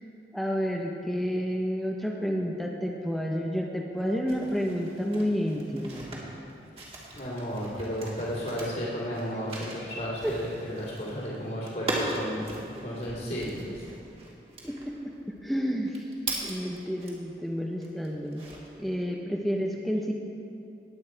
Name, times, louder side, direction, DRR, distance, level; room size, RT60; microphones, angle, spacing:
voice 1, 0.3-6.1 10.2-10.3 14.6-15.9 16.4-18.4 18.8-20.1, equal, ahead, 0 dB, 0.7 m, -30 dB
sound 1, 4.0-17.4 17.8-18.9, right 2 dB, 35° right, 1.9 m, -39 dB
voice 2, 7.1-12.5 12.8-13.8, equal, 50° left, -10 dB, 2.5 m, -33 dB
19.0 x 8.2 x 4.5 m, 2.7 s
head